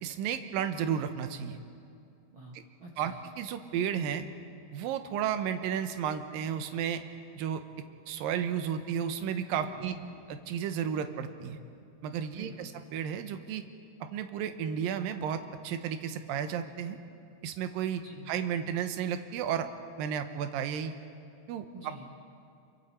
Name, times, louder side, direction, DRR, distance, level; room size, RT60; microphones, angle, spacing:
voice 1, 0.0-1.6 3.0-3.1 3.4-4.2 4.7-7.0 7.3-7.6 8.1-9.9 10.5-11.6 12.0-13.6 14.1-17.0 17.4-19.7 20.0-20.9 21.5-21.7, right 8 dB, 70° right, 8 dB, 2.4 m, -33 dB
voice 2, 2.3-3.2 9.6-10.2 12.3-12.7 18.0-18.3 21.7-22.1, right 2 dB, 50° right, -1 dB, 1.6 m, -47 dB
28.0 x 24.0 x 4.3 m, 2.5 s
omnidirectional pair, 4.6 m